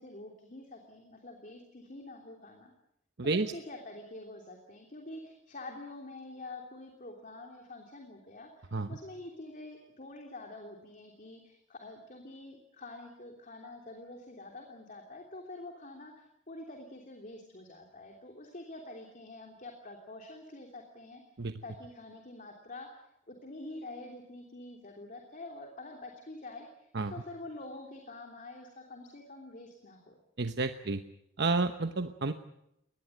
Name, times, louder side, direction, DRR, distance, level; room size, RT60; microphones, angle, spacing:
voice 1, 0.0-2.7 3.2-21.2 21.6-30.2, left 2 dB, 40° left, 2 dB, 3.2 m, -47 dB
voice 2, 3.2-3.5 8.7-8.9 21.4-21.5 26.9-27.1 30.4-31.0 31.4-32.3, right 3 dB, 60° right, 8 dB, 1.0 m, -30 dB
22.0 x 19.5 x 9.2 m, 0.81 s
head